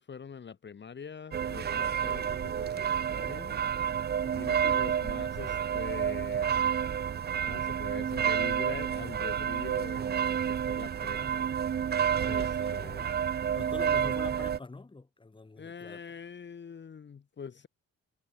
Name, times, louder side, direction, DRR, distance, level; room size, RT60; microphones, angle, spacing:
voice 1, 0.0-3.6 4.3-6.8 7.5-11.5 12.2-12.4 12.7-13.0 15.6-17.7, left 6 dB, 35° left, 1.5 m, -44 dB
sound 1, 1.3-14.6, right 8 dB, 35° right, 0.6 m, -30 dB
voice 2, 11.1-11.7 12.2-16.0, left 3 dB, 15° left, 1.8 m, -46 dB
cardioid pair, 90°, 30 cm